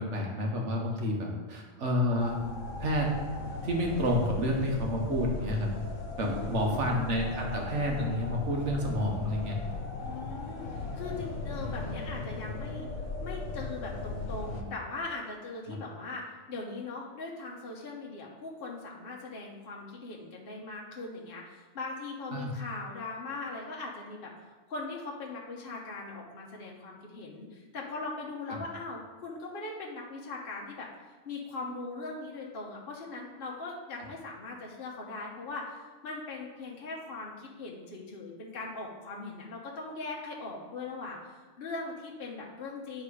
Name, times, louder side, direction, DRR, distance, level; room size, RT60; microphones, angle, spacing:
voice 1, 0.0-2.4 2.8-3.1 3.4-5.7 6.2-9.6 15.7-15.8 22.3-22.5 28.5-28.6, equal, 70° right, 0 dB, 1.6 m, -29 dB
sound 1, 2.2-14.6, left 3 dB, 75° left, 1.3 m, -37 dB
voice 2, 6.2-6.9 10.0-12.9 13.2-24.3 24.7-30.9 31.2-35.8 36.0-43.0, left 3 dB, 50° left, -2 dB, 1.1 m, -40 dB
9.7 x 3.8 x 4.9 m, 1.3 s
omnidirectional pair, 1.3 m